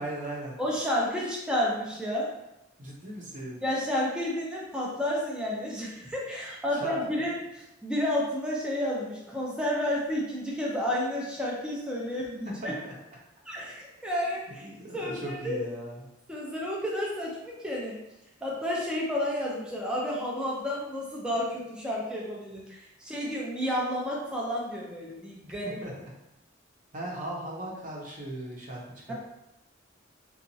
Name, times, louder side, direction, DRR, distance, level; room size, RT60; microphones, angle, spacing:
voice 1, 0.0-0.6 2.8-3.6 6.7-7.0 12.6-12.9 14.6-16.1 25.6-26.1 26.9-28.8 29.1-29.2, right 1 dB, 45° right, -4 dB, 0.7 m, -38 dB
voice 2, 0.6-2.3 3.6-12.7 13.5-14.7 14.9-15.6 16.3-18.0 18.4-25.7 29.1-29.2, left 1 dB, 5° right, -5 dB, 0.4 m, -31 dB
2.9 x 2.3 x 2.6 m, 0.88 s
head